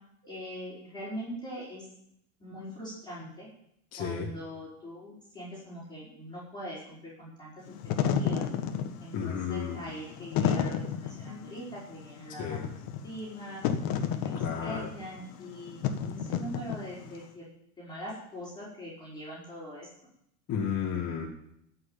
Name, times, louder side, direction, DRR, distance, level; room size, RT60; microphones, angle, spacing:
voice 1, 0.2-1.8 2.4-3.5 4.0-7.7 8.0-8.4 9.0-12.6 13.0-13.6 14.1-17.5 17.8-19.9, equal, 10° left, -8 dB, 5.3 m, -42 dB
voice 2, 3.9-4.3 9.1-9.8 12.4-12.6 14.3-14.9 20.5-21.3, left 7 dB, 35° left, -3 dB, 2.2 m, -33 dB
Wind / Fire, 7.7-17.2, left 8 dB, 50° left, 1.6 m, -31 dB
13.5 x 6.5 x 9.0 m, 0.74 s
supercardioid pair, 125°, 45 cm